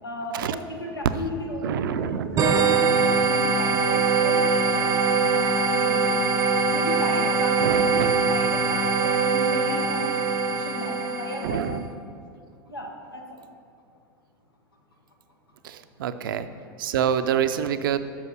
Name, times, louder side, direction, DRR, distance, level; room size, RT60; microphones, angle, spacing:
voice 1, 0.0-6.2 6.7-11.6 12.7-13.4, left 1 dB, 85° left, 1 dB, 1.2 m, -35 dB
voice 2, 1.6-2.6 7.6-8.1 11.4-11.8 15.6-16.5 16.8-18.0, right 9 dB, 65° right, 11 dB, 0.4 m, -27 dB
sound 1, 2.4-11.7, right 4 dB, 25° right, 0.6 m, -22 dB
7.2 x 5.7 x 6.0 m, 2.3 s
figure-of-eight pair, 85°, 12 cm